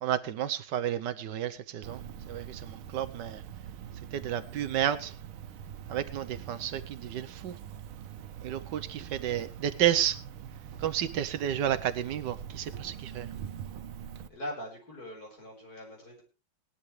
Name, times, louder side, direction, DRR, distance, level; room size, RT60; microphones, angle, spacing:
voice 1, 0.0-2.0 2.3-3.4 4.1-5.1 5.9-7.5 8.4-10.2 10.8-13.3, right 10 dB, 65° right, 13 dB, 1.4 m, -31 dB
Cricket, 1.8-14.3, right 9 dB, 90° right, 1.7 m, -43 dB
voice 2, 14.2-16.2, left 1 dB, 45° left, 0 dB, 5.5 m, -41 dB
19.5 x 11.5 x 3.2 m, 0.31 s
omnidirectional pair, 2.2 m